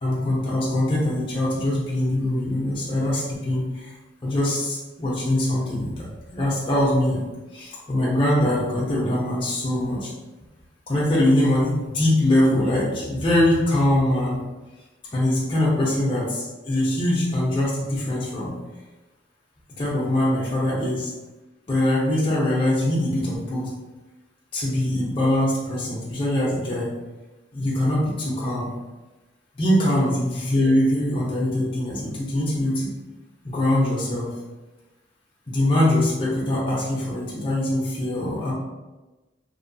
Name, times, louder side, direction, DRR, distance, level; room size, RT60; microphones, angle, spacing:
voice 1, 0.0-3.9 4.2-6.0 6.3-7.2 7.5-10.1 10.9-14.4 15.1-18.5 19.8-21.1 21.7-23.7 24.5-26.9 27.5-28.7 29.6-32.9 33.4-34.3 35.5-38.5, left 1 dB, 30° left, -7 dB, 0.6 m, -22 dB
3.0 x 2.2 x 2.6 m, 1.1 s
head